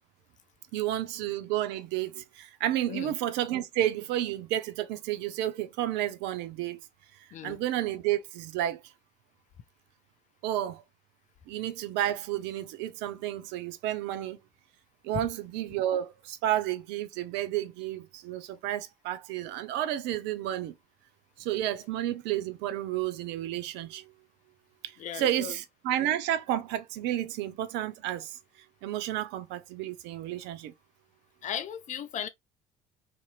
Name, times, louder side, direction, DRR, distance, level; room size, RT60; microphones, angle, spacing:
voice 1, 0.7-6.8 7.4-8.8 10.4-10.8 11.5-14.4 15.0-20.7 21.4-24.1 24.8-28.4 28.8-30.7, right 12 dB, 55° right, 0.5 m, -31 dB
voice 2, 7.3-7.6 25.0-25.6 31.4-32.3, left 9 dB, 35° left, 0.4 m, -36 dB
2.7 x 2.6 x 2.3 m
figure-of-eight pair, 60°, 21 cm